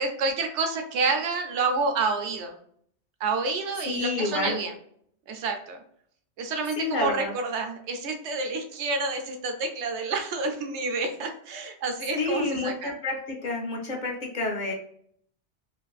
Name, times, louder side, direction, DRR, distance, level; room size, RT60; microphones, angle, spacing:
voice 1, 0.0-2.6 3.2-4.7 5.3-5.8 6.4-12.9, right 3 dB, 80° right, 4 dB, 0.9 m, -29 dB
voice 2, 3.8-4.6 6.8-7.3 12.2-14.7, left 2 dB, 50° left, 0 dB, 0.6 m, -29 dB
2.5 x 2.4 x 2.3 m, 0.66 s
omnidirectional pair, 1.1 m